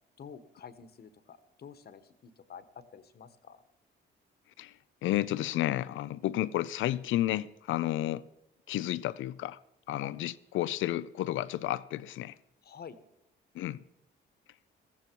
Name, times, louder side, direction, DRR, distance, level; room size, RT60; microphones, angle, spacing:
voice 1, 0.2-3.6 10.0-10.1 12.6-13.0, left 7 dB, 55° left, 1.3 m, -49 dB
voice 2, 4.6-8.3 8.7-9.6 9.9-12.4 13.5-13.8, left 14 dB, 80° left, 0.6 m, -32 dB
16.0 x 14.5 x 4.6 m
cardioid pair, 90°, 20 cm